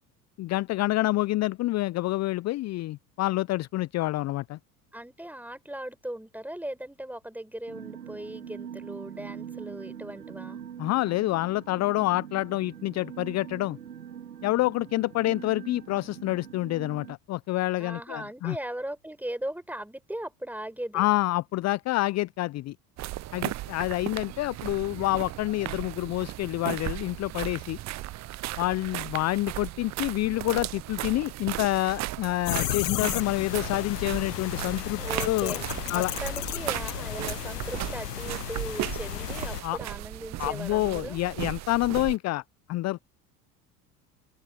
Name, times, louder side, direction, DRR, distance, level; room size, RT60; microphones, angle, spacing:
voice 1, 0.4-4.6 10.8-13.8 14.4-18.6 20.9-22.7 23.3-27.8 28.6-35.6 35.9-36.1 39.6-39.8 40.4-42.4 42.7-43.0, left 17 dB, 35° left, 0.6 m, -27 dB
voice 2, 4.9-10.6 17.8-21.0 35.0-41.2, right 1 dB, 5° right, 6.4 m, -38 dB
sound 1, 7.7-17.2, right 8 dB, 85° right, 2.0 m, -43 dB
sound 2, 23.0-42.2, right 16 dB, 35° right, 0.7 m, -36 dB
sound 3, 32.5-39.6, left 14 dB, 80° left, 0.7 m, -34 dB
open air
figure-of-eight pair, 70°, 47 cm